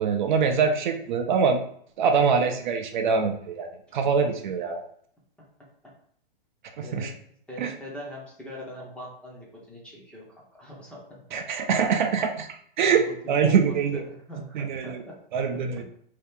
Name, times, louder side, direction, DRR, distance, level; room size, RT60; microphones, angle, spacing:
voice 1, 0.0-1.6 2.0-4.8 6.8-7.1 7.6-7.7 11.3-12.5 12.8-14.0 14.5-15.0 15.3-15.8, right 6 dB, 55° right, 5 dB, 0.5 m, -24 dB
voice 2, 7.5-11.4 12.9-15.1, left 1 dB, 5° left, -4 dB, 0.6 m, -42 dB
2.8 x 2.4 x 3.5 m, 0.63 s
hypercardioid pair, 135°, 29 cm